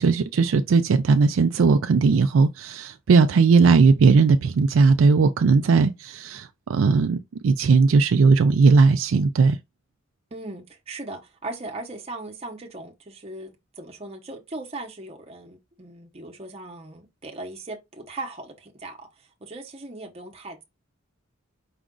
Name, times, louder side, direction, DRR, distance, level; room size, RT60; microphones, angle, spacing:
voice 1, 0.0-9.6, right 4 dB, 85° right, 0.4 m, -18 dB
voice 2, 10.3-19.1 19.4-20.6, right 2 dB, 30° right, 0.9 m, -38 dB
5.0 x 2.4 x 3.7 m
head